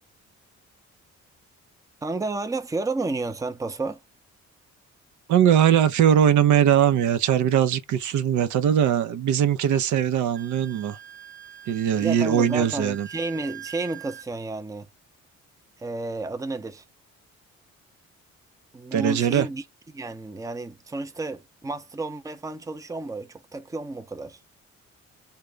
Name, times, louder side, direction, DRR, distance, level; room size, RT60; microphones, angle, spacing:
voice 1, 2.0-4.0 12.0-14.9 15.8-16.8 18.7-19.6 19.9-24.4, right 2 dB, 10° right, 0.6 m, -31 dB
voice 2, 5.3-11.0 11.7-13.1 18.9-19.5, right 9 dB, 75° right, 0.6 m, -20 dB
Wind instrument woodwind instrument, 10.3-14.3, right 10 dB, 40° right, 1.0 m, -44 dB
3.7 x 2.2 x 3.2 m
cardioid pair, 90°, 30 cm